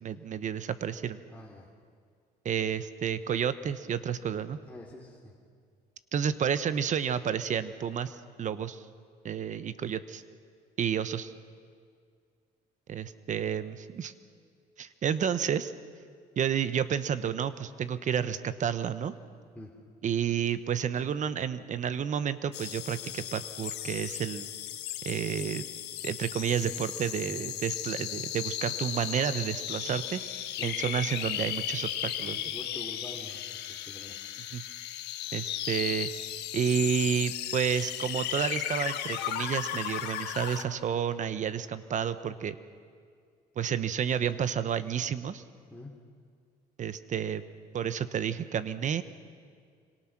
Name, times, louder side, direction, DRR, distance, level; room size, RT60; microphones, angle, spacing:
voice 1, 0.0-1.2 2.4-4.6 6.1-8.9 9.2-10.2 10.8-11.3 12.9-14.1 14.8-15.7 16.4-19.2 20.0-24.5 25.0-25.6 26.0-30.2 30.6-32.4 34.5-34.6 35.3-36.1 36.5-42.6 43.6-45.4 46.8-47.4 47.7-49.0, right 8 dB, 45° right, 13 dB, 1.1 m, -30 dB
voice 2, 1.3-1.7 4.7-5.3 19.5-19.7 30.6-31.0 32.3-34.2 45.7-45.9, left 1 dB, 10° left, -2 dB, 2.8 m, -46 dB
sound 1, 22.5-40.6, left 11 dB, 80° left, 1.5 m, -35 dB
26.5 x 25.0 x 6.1 m, 2.1 s
cardioid pair, 110°, 17 cm